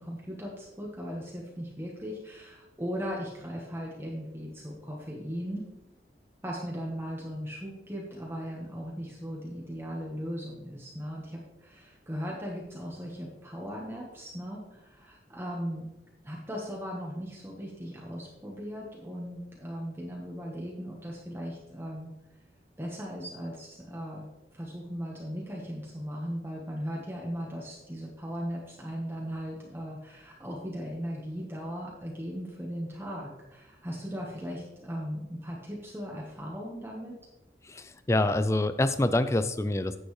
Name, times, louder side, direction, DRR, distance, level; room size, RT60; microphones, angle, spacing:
voice 1, 0.0-5.6 6.4-15.9 16.2-22.1 22.8-24.3 24.5-37.1, equal, 15° right, -3 dB, 1.3 m, -38 dB
voice 2, 37.7-40.0, left 2 dB, 15° left, 12 dB, 0.4 m, -26 dB
9.8 x 7.9 x 3.2 m, 0.94 s
head